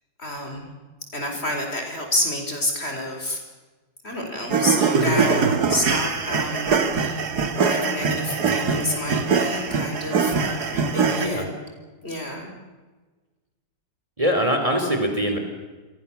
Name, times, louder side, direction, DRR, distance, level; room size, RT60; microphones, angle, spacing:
voice 1, 0.2-0.7 1.1-3.4 4.0-7.2 7.5-11.6 12.0-12.5, left 1 dB, 35° left, 3 dB, 5.0 m, -29 dB
sound 1, 4.5-11.3, right 5 dB, 60° right, 2.4 m, -22 dB
voice 2, 8.2-8.5 11.1-11.5 14.2-15.4, equal, 20° right, 4 dB, 3.4 m, -23 dB
29.0 x 23.0 x 7.2 m, 1.3 s
omnidirectional pair, 2.0 m